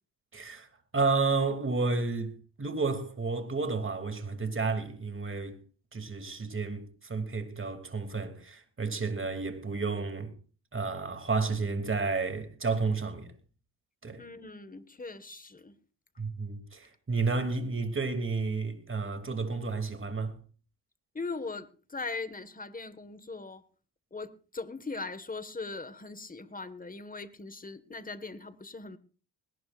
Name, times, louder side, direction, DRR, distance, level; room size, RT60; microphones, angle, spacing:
voice 1, 0.3-0.7 0.9-5.6 5.9-10.3 10.7-13.3 14.0-14.2 16.2-20.4, right 4 dB, 30° right, 3.0 m, -31 dB
voice 2, 14.2-15.7 21.2-23.6 24.1-29.0, left 3 dB, 20° left, 1.8 m, -40 dB
20.5 x 18.5 x 2.6 m
cardioid pair, 85°, 42 cm